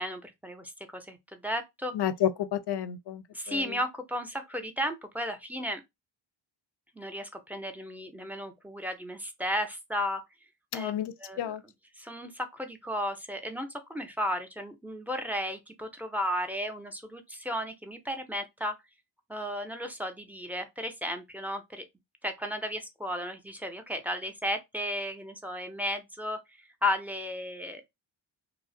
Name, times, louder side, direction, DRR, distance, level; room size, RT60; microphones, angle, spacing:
voice 1, 0.0-1.9 3.3-5.8 6.9-10.2 10.7-10.9 11.2-11.5 12.0-18.7 19.3-21.8 22.2-27.8, equal, 5° right, 0.5 m, -34 dB
voice 2, 1.9-3.7 10.7-11.6, left 10 dB, 55° left, 0.5 m, -31 dB
2.4 x 2.0 x 2.6 m
cardioid pair, 45°, 49 cm